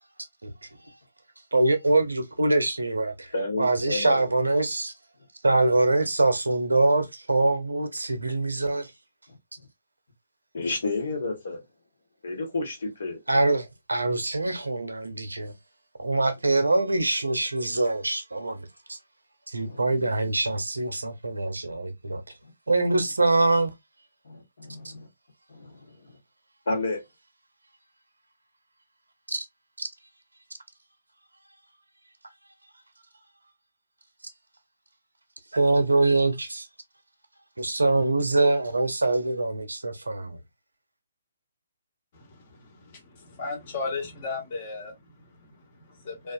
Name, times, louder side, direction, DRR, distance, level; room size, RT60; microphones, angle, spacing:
voice 1, 1.5-4.9 5.4-8.9 13.3-15.5 16.0-19.0 19.5-22.2 22.7-23.7 29.3-29.5 35.5-36.7 37.6-40.4, right 2 dB, 80° right, 0.6 m, -24 dB
voice 2, 3.3-4.3 9.3-9.4 10.5-11.6 12.2-13.2 19.5-19.8 24.2-25.1 25.5-26.1 26.7-27.0, left 2 dB, 60° left, 1.1 m, -31 dB
voice 3, 42.1-46.3, left 4 dB, 40° left, 1.1 m, -36 dB
2.4 x 2.3 x 2.3 m
figure-of-eight pair, 135°, 0 cm